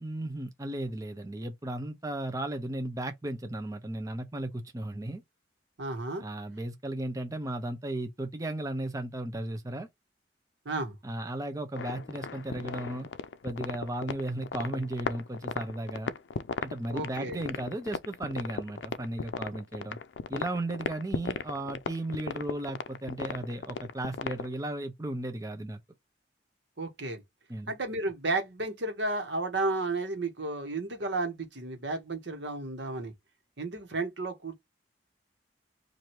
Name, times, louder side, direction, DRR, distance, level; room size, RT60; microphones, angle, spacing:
voice 1, 0.0-5.2 6.2-9.9 11.0-13.1 13.4-16.1 16.6-20.0 20.3-25.8 27.5-27.7, right 1 dB, 20° right, 0.6 m, -35 dB
voice 2, 5.8-6.2 10.6-11.0 16.9-17.4 26.8-27.2 27.7-33.1 33.6-34.6, right 2 dB, 90° right, 1.3 m, -33 dB
sound 1, 11.8-24.5, left 5 dB, 85° left, 0.4 m, -36 dB
4.2 x 2.6 x 3.2 m
head